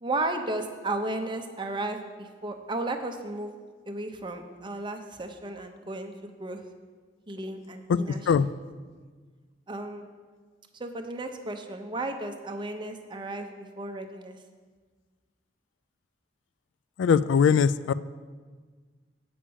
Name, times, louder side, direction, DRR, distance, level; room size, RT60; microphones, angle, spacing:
voice 1, 0.0-3.5 3.9-6.6 7.3-8.2 9.7-10.1 10.7-14.4, right 2 dB, 25° right, 5 dB, 0.7 m, -34 dB
voice 2, 17.0-17.9, left 6 dB, 90° left, 16 dB, 0.3 m, -21 dB
8.7 x 5.1 x 6.9 m, 1.5 s
head